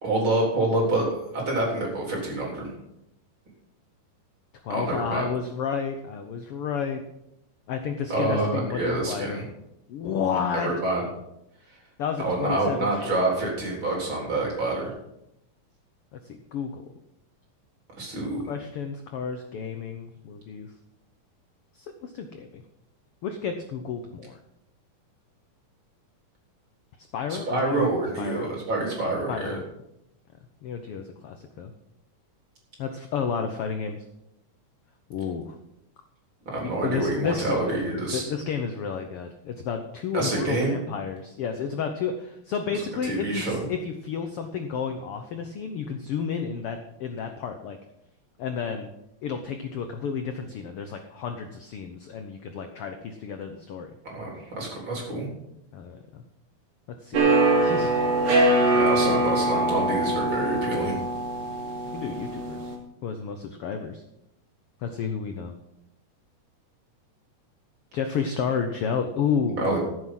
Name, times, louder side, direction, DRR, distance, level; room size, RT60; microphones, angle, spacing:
voice 1, 0.0-2.7 4.7-5.3 8.1-9.4 10.5-11.0 12.2-14.9 18.0-18.4 27.3-29.6 36.5-38.2 40.1-40.8 42.7-43.6 54.0-55.3 58.7-61.0 69.6-69.8, right 2 dB, 35° right, -2 dB, 4.4 m, -27 dB
voice 2, 4.6-7.0 7.7-9.4 9.9-10.7 12.0-13.2 16.1-16.8 18.5-20.7 21.7-22.6 23.2-24.4 27.1-27.9 28.2-28.5 29.3-29.6 30.6-31.7 32.8-34.0 35.1-35.5 36.8-37.8 38.1-47.8 48.4-48.9 49.2-53.9 55.7-56.2 57.0-57.3 57.6-58.3 61.9-62.7 63.0-64.0 64.8-65.5 67.9-69.6, left 6 dB, 75° left, 6 dB, 1.3 m, -31 dB
sound 1, 57.1-62.8, right 2 dB, 60° right, 3.6 m, -23 dB
14.5 x 7.8 x 6.1 m, 0.84 s
omnidirectional pair, 3.8 m